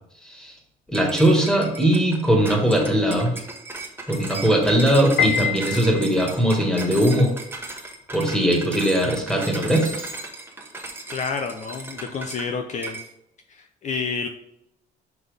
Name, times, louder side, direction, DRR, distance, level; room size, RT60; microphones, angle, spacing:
voice 1, 0.2-0.5 0.9-3.3 4.1-7.3 8.1-10.1, right 1 dB, 5° left, 0 dB, 2.0 m, -20 dB
sound 1, 0.9-12.5 12.8-13.1, right 2 dB, 15° right, 1.2 m, -36 dB
Piano, 5.2-6.5, left 7 dB, 85° left, 0.9 m, -25 dB
voice 2, 11.1-13.0 13.5-14.3, left 5 dB, 45° left, 4 dB, 0.7 m, -29 dB
5.9 x 5.5 x 3.5 m, 0.79 s
cardioid pair, 110°, 17 cm